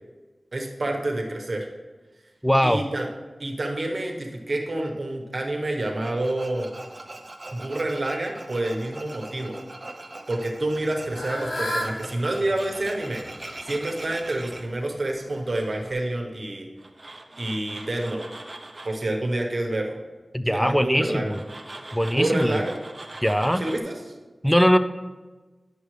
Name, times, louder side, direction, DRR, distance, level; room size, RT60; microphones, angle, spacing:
voice 1, 0.5-1.7 2.6-3.1 3.4-6.7 7.5-9.6 10.3-13.2 13.6-16.7 17.4-18.2 18.8-20.0 20.5-21.3 22.1-22.8 23.6-23.9, right 1 dB, 60° right, 1 dB, 1.1 m, -28 dB
voice 2, 2.4-2.8 20.3-21.4 21.9-22.6 23.2-23.6 24.4-24.8, equal, 5° left, 9 dB, 0.4 m, -21 dB
Tools, 6.0-14.6 16.8-19.0 21.3-23.8, right 2 dB, 40° right, 0.7 m, -41 dB
Fowl / Bird, 10.6-15.9, equal, 80° left, 1.1 m, -36 dB
10.0 x 6.7 x 3.2 m, 1.3 s
wide cardioid pair, 80°, 0 cm